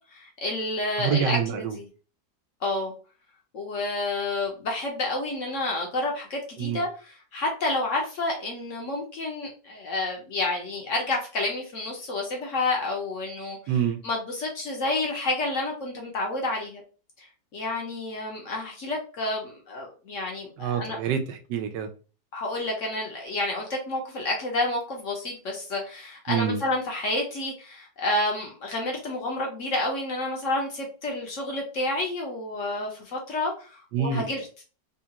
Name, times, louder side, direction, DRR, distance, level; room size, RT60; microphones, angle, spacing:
voice 1, 0.1-1.9 2.6-2.9 3.5-13.6 14.0-16.8 17.2-21.0 22.3-34.4, left 2 dB, 55° left, 1.0 m, -29 dB
voice 2, 1.0-1.8 6.6-6.8 13.7-14.0 20.6-21.9 26.3-26.6 33.9-34.3, right 7 dB, 85° right, 1.2 m, -26 dB
3.7 x 2.4 x 2.8 m
omnidirectional pair, 1.9 m